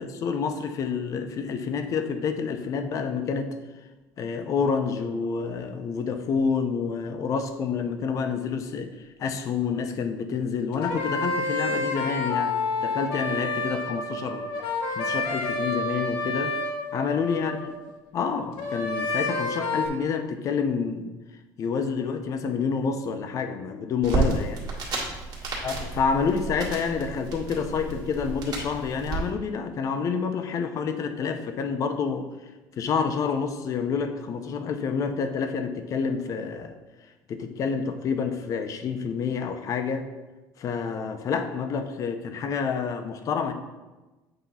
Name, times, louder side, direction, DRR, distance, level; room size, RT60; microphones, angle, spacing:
voice 1, 0.0-3.5 4.2-8.9 9.2-12.5 12.8-14.5 14.9-16.5 16.9-17.6 18.1-21.1 21.6-24.6 25.6-32.3 32.8-36.7 37.3-40.1 40.6-43.5, left 5 dB, 40° left, 7 dB, 0.6 m, -28 dB
sound 1, 10.7-17.9 18.6-19.9, left 3 dB, 80° left, 1.0 m, -29 dB
sound 2, 24.0-29.2, right 3 dB, 45° right, 1.9 m, -31 dB
7.9 x 2.9 x 5.5 m, 1.2 s
cardioid pair, 155°, 8 cm